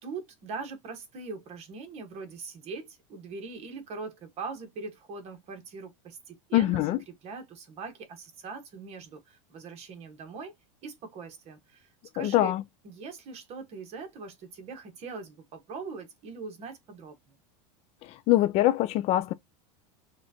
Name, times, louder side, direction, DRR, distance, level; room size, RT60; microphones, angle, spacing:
voice 1, 0.0-10.5 10.8-11.9 12.1-12.5 12.8-17.4, right 4 dB, 40° right, 1.4 m, -41 dB
voice 2, 6.5-7.0 12.2-12.6 18.0-19.3, left 15 dB, 40° left, 0.4 m, -24 dB
6.1 x 2.5 x 2.8 m
supercardioid pair, 145°, 17 cm